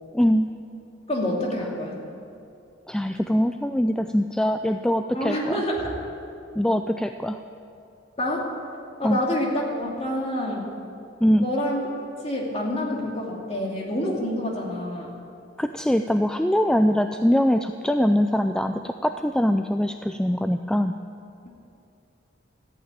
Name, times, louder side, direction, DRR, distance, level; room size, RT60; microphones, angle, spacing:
voice 1, 0.1-0.5 2.9-5.5 6.6-7.4 9.0-9.2 11.2-11.5 15.6-20.9, equal, 5° left, 7 dB, 0.3 m, -22 dB
voice 2, 1.1-2.0 5.1-5.9 8.2-8.5 9.0-10.7 11.4-11.8 12.2-15.1, left 1 dB, 35° left, -2 dB, 2.5 m, -27 dB
14.0 x 9.0 x 9.1 m, 2.6 s
head